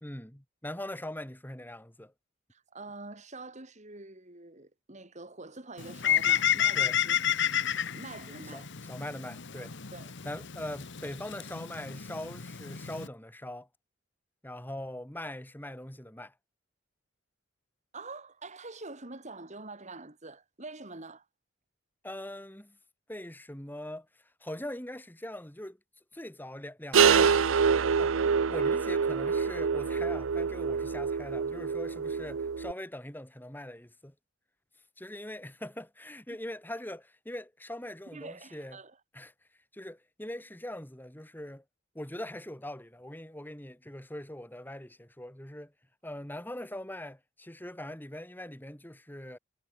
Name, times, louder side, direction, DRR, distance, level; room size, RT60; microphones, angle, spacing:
voice 1, 0.0-2.1 6.8-7.0 8.5-9.8 10.2-13.7 14.4-16.3 22.0-22.8 23.1-25.8 26.1-27.5 28.0-28.2 28.5-34.1 35.0-38.8 39.1-39.3 39.7-41.6 41.9-45.7 46.0-49.4, left 1 dB, 10° left, 2.1 m, -42 dB
voice 2, 2.5-7.3 7.9-8.7 9.9-10.1 17.9-21.2 38.1-38.9, right 3 dB, 35° right, 2.8 m, -45 dB
Bird, 5.8-13.1, left 10 dB, 60° left, 1.2 m, -31 dB
sound 1, 26.9-32.7, right 6 dB, 70° right, 0.6 m, -26 dB
head